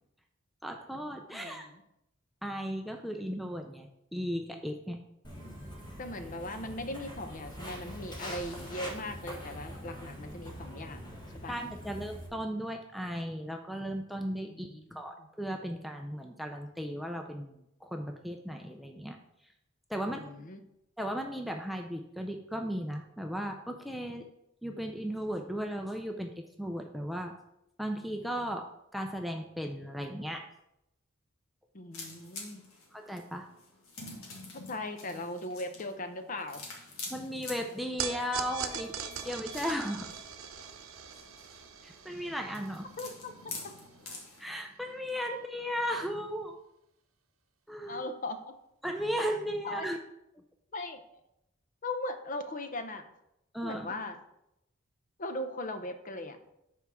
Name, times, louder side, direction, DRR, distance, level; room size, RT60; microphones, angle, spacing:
voice 1, 0.6-1.7 2.4-5.0 11.5-19.2 19.9-20.5 21.0-24.3 24.6-27.3 27.8-28.7 28.9-30.5 32.9-33.5 37.1-40.1 41.8-42.9 44.4-46.6 47.7-48.1 48.8-50.0 53.5-53.9, equal, ahead, 3 dB, 0.4 m, -36 dB
voice 2, 1.3-1.8 5.4-5.6 6.0-11.1 11.4-11.5 14.5-15.3 20.0-20.6 31.7-32.6 34.5-36.6 43.0-43.7 47.9-48.4 49.6-49.8 50.7-51.0 51.8-53.0 53.6-54.2 55.2-56.4, left 1 dB, 40° left, 8 dB, 0.6 m, -39 dB
Walk footsteps, 5.2-12.3, equal, 20° left, 1.4 m, -44 dB
sound 1, 31.9-44.5, left 3 dB, 85° left, 1.7 m, -47 dB
sound 2, 38.0-44.4, right 7 dB, 75° right, 0.7 m, -41 dB
5.8 x 4.5 x 6.1 m, 0.83 s
head